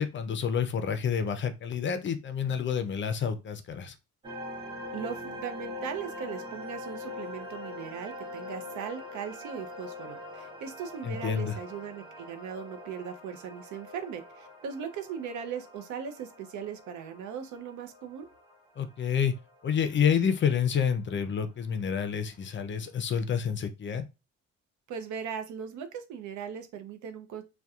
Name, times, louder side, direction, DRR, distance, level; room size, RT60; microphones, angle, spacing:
voice 1, 0.0-3.9 11.0-11.5 18.8-19.3 19.6-24.0, left 7 dB, 40° left, 0.4 m, -28 dB
sound 1, 4.2-21.2, left 2 dB, 15° right, 0.6 m, -43 dB
voice 2, 4.9-18.3 24.9-27.4, right 7 dB, 75° right, 0.5 m, -39 dB
2.7 x 2.2 x 2.3 m
cardioid pair, 90°, 30 cm